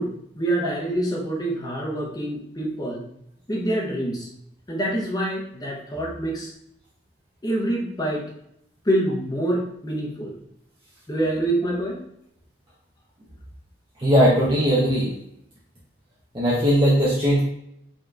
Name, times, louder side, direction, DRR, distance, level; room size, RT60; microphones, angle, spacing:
voice 1, 0.0-3.0 3.5-4.3 4.7-6.5 7.4-8.3 8.8-10.3 11.1-12.0, right 1 dB, 20° left, -2 dB, 0.8 m, -26 dB
voice 2, 14.0-15.1 16.3-17.4, equal, 30° right, -7 dB, 0.8 m, -19 dB
5.1 x 2.9 x 2.5 m, 0.75 s
head